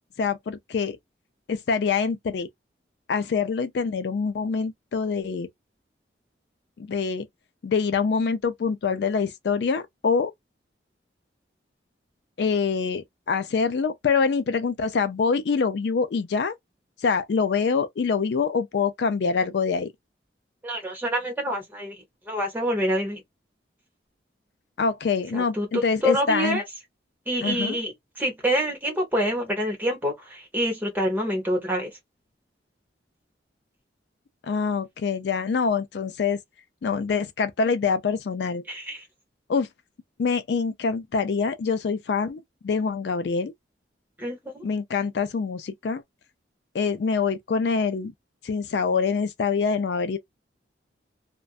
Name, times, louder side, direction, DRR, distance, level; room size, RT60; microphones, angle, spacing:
voice 1, 0.2-1.0 1.5-2.5 3.1-5.5 6.8-7.3 7.6-10.3 12.4-16.5 17.0-19.9 24.8-26.6 27.4-27.8 34.4-36.4 36.8-38.6 39.5-39.7 40.2-43.5 44.6-46.0 46.7-48.1 48.4-50.2, left 5 dB, 65° left, 0.4 m, -25 dB
voice 2, 20.6-22.0 22.3-23.2 25.3-26.6 27.3-27.9 28.2-31.9 38.7-39.0 44.2-44.6, equal, 10° right, 1.0 m, -26 dB
2.5 x 2.2 x 2.3 m
head